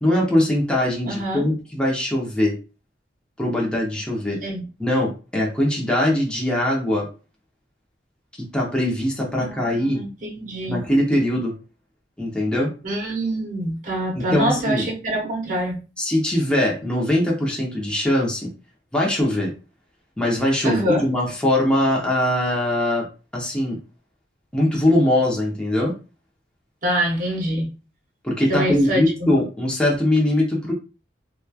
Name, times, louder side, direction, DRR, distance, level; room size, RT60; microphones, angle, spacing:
voice 1, 0.0-2.6 3.4-4.4 4.8-7.1 8.4-10.0 10.7-11.5 12.2-12.7 14.2-14.9 16.0-18.5 18.9-19.5 20.2-23.1 23.3-23.8 24.5-25.9 28.2-30.7, left 1 dB, 5° left, -3 dB, 0.6 m, -21 dB
voice 2, 1.0-1.4 4.4-4.7 9.4-10.8 12.8-15.8 20.6-21.0 26.8-27.7 28.5-29.0, right 1 dB, 45° right, -1 dB, 0.8 m, -25 dB
3.0 x 2.2 x 2.3 m, 0.33 s
head